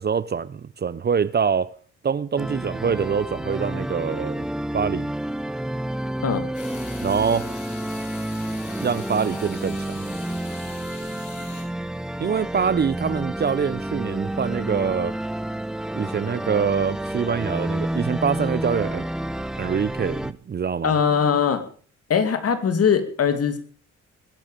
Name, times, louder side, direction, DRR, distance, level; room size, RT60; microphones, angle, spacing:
voice 1, 0.0-1.7 2.0-4.5 4.7-5.1 7.0-7.5 8.8-10.0 12.2-15.2 15.9-19.1 19.6-20.9, right 6 dB, 35° right, 0.7 m, -24 dB
sound 1, 2.4-20.3, right 1 dB, ahead, 0.8 m, -30 dB
sound 2, 6.5-11.6, left 5 dB, 75° left, 7.4 m, -43 dB
voice 2, 20.8-21.6 22.1-23.6, left 7 dB, 50° left, 2.7 m, -21 dB
21.5 x 11.0 x 5.1 m
cardioid pair, 90°, 30 cm